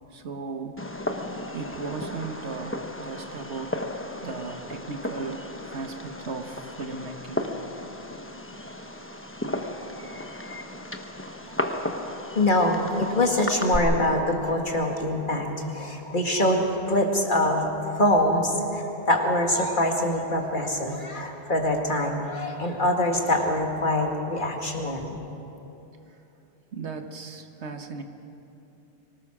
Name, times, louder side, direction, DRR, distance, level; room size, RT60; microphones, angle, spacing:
voice 1, 0.1-3.9 4.2-7.4 11.2-11.3 24.9-25.0 26.7-28.0, right 4 dB, 75° right, 6 dB, 1.5 m, -37 dB
Fireworks, 0.8-13.8, left 1 dB, 10° left, 1.0 m, -35 dB
voice 2, 12.4-25.2, left 1 dB, 45° left, 2 dB, 2.2 m, -24 dB
24.5 x 19.0 x 6.1 m, 3.0 s
omnidirectional pair, 1.1 m